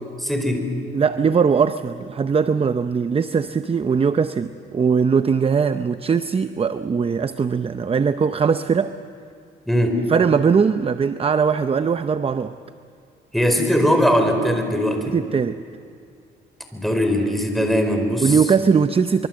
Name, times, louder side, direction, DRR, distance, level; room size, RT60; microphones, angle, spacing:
voice 1, 0.2-0.7 9.7-10.0 13.3-15.2 16.7-18.4, equal, ahead, 4.5 m, -20 dB
voice 2, 0.9-9.0 10.1-12.5 15.1-15.6 18.2-19.3, right 6 dB, 30° right, 0.6 m, -20 dB
25.0 x 23.5 x 7.7 m
cardioid pair, 90°, 20 cm